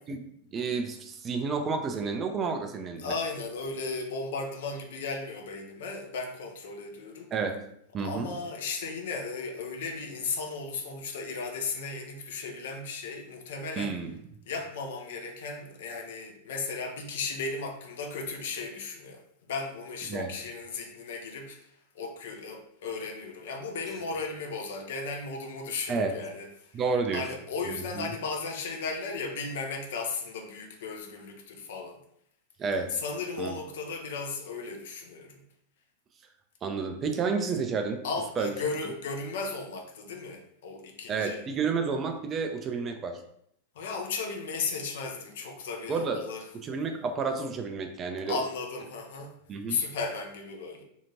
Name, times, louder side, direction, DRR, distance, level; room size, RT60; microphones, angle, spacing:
voice 1, 0.5-3.1 7.3-7.6 7.9-8.3 13.8-14.2 20.1-20.3 25.9-26.1 26.7-27.2 27.9-28.1 32.6-33.0 33.4-33.6 36.6-38.0 38.4-38.6 41.1-43.2 45.9-46.3 46.5-48.4 49.5-49.8, right 4 dB, 25° right, 5 dB, 0.4 m, -30 dB
voice 2, 3.0-7.3 8.0-14.0 14.5-19.2 19.5-26.8 27.1-32.0 32.9-35.4 38.0-41.4 43.7-46.4 48.3-49.4 49.7-50.8, left 4 dB, 60° left, 2 dB, 0.5 m, -35 dB
2.8 x 2.5 x 2.8 m, 0.72 s
figure-of-eight pair, 95°, 0 cm